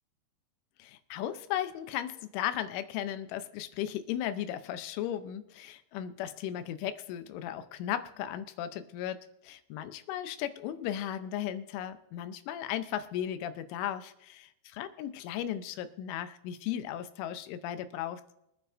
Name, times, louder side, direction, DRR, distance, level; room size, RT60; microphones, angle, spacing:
voice 1, 0.8-18.2, left 11 dB, 85° left, 11 dB, 3.2 m, -36 dB
25.0 x 9.8 x 2.6 m, 0.82 s
omnidirectional pair, 5.5 m